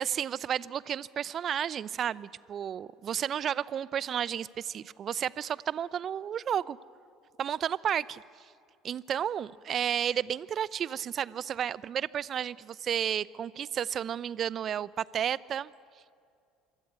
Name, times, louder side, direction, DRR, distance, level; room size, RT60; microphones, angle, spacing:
voice 1, 0.0-6.8 7.4-8.2 8.8-15.7, right 9 dB, 45° right, 21 dB, 0.6 m, -32 dB
25.5 x 24.5 x 8.3 m, 2.3 s
hypercardioid pair, 65°, 0 cm